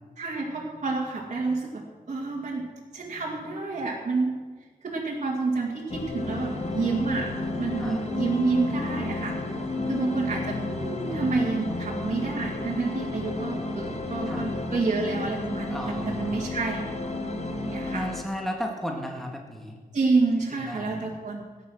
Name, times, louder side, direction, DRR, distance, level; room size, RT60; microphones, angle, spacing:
voice 1, 0.2-2.7 2.9-4.4 4.8-9.4 9.9-15.8 16.1-16.9 17.7-18.1 19.9-21.4, right 3 dB, 50° right, -3 dB, 2.0 m, -28 dB
sound 1, 5.9-18.2, left 4 dB, 45° left, 1.2 m, -33 dB
sound 2, 6.2-18.0, right 2 dB, 25° right, 1.6 m, -37 dB
voice 2, 7.8-8.1 10.1-10.9 14.3-14.5 15.7-16.4 17.9-19.8 20.5-20.9, equal, ahead, 0 dB, 1.9 m, -35 dB
17.5 x 9.5 x 6.3 m, 1.4 s
wide cardioid pair, 110°, 16 cm